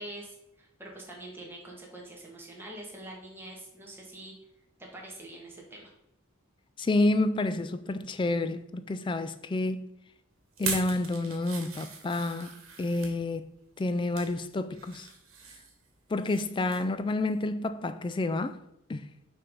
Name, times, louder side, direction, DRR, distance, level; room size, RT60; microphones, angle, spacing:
voice 1, 0.0-4.3 4.8-5.9, right 1 dB, 10° right, 1.6 m, -45 dB
voice 2, 6.8-9.9 10.6-13.5 13.8-15.1 16.1-18.6 18.9-19.0, left 2 dB, 25° left, 0.3 m, -29 dB
sound 1, 10.5-13.1 13.8-14.3 14.7-16.4 16.7-16.9 17.3-17.4, right 5 dB, 90° right, 1.4 m, -40 dB
5.6 x 3.4 x 5.4 m
head